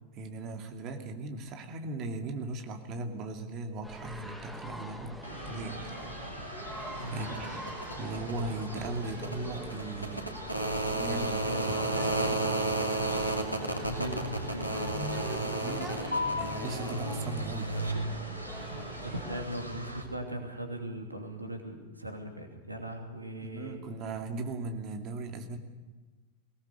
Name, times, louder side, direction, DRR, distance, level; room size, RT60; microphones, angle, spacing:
voice 1, 0.1-6.2 7.1-7.7 8.0-10.3 10.9-11.6 11.9-12.4 15.5-17.8 23.4-25.6, right 2 dB, 35° right, 5 dB, 2.5 m, -38 dB
sound 1, 3.8-19.4, equal, ahead, 2.4 m, -45 dB
sound 2, 5.2-20.0, right 1 dB, 90° left, 2.7 m, -34 dB
voice 2, 7.0-7.3 11.4-12.1 13.8-15.3 18.7-23.8, right 1 dB, 85° right, 4 dB, 2.8 m, -39 dB
22.5 x 18.5 x 6.8 m, 1.3 s
figure-of-eight pair, 90°, 0 cm